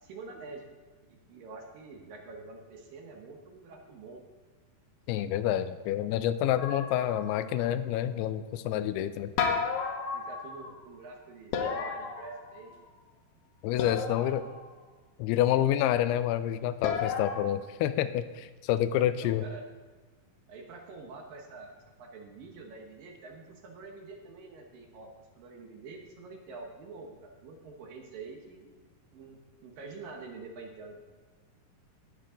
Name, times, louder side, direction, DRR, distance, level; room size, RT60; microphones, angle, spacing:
voice 1, 0.0-0.7 1.1-4.2 10.1-12.8 13.8-14.6 17.3-17.4 19.2-19.6 20.5-25.1 25.4-28.7 29.1-31.1, right 3 dB, 70° right, 2 dB, 2.6 m, -46 dB
voice 2, 5.1-9.3 13.6-14.4 15.2-19.4, left 11 dB, 90° left, 12 dB, 2.6 m, -28 dB
sound 1, 6.6-7.5 9.4-10.8 11.5-12.8 13.8-14.6 16.8-17.4, left 6 dB, 70° left, 2.4 m, -33 dB
18.0 x 6.1 x 3.8 m, 1.3 s
omnidirectional pair, 4.5 m